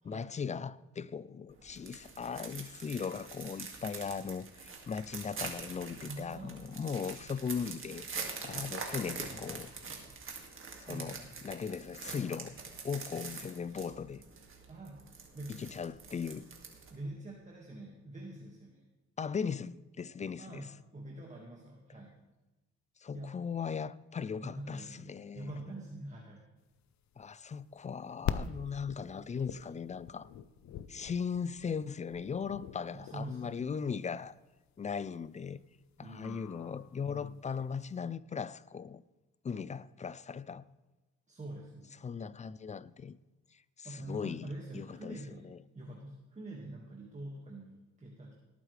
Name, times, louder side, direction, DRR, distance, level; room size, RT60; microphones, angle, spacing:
voice 1, 0.0-9.7 10.8-11.2 11.4-12.6 12.8-14.2 15.5-16.5 19.2-20.7 23.0-25.5 27.2-30.3 30.9-34.4 34.8-35.6 36.0-39.0 39.4-40.6 42.0-43.2 43.8-45.2 45.4-45.6, left 6 dB, 25° left, 0.4 m, -38 dB
sound 1, 1.5-17.0, right 4 dB, 45° right, 2.3 m, -45 dB
voice 2, 6.1-6.6 9.2-9.4 10.8-11.3 14.7-15.0 15.3-15.6 16.9-18.9 20.4-22.2 23.1-23.3 24.4-26.4 32.9-33.7 36.0-36.5 41.3-42.0 43.8-45.5 45.7-48.3, right 1 dB, 25° right, 1.9 m, -45 dB
sound 2, 26.8-37.8, left 9 dB, 65° left, 0.7 m, -43 dB
18.5 x 8.9 x 3.3 m
cardioid pair, 90°, 30 cm